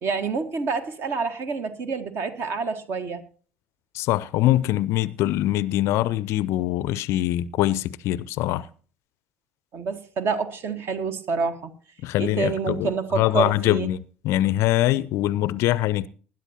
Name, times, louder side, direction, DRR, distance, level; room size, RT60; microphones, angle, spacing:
voice 1, 0.0-3.2 9.7-11.7 12.2-13.9, right 5 dB, 45° right, 1.5 m, -27 dB
voice 2, 3.9-8.7 12.0-14.0 14.2-16.1, left 15 dB, 50° left, 0.5 m, -23 dB
20.0 x 10.5 x 2.8 m
figure-of-eight pair, 60°, 6 cm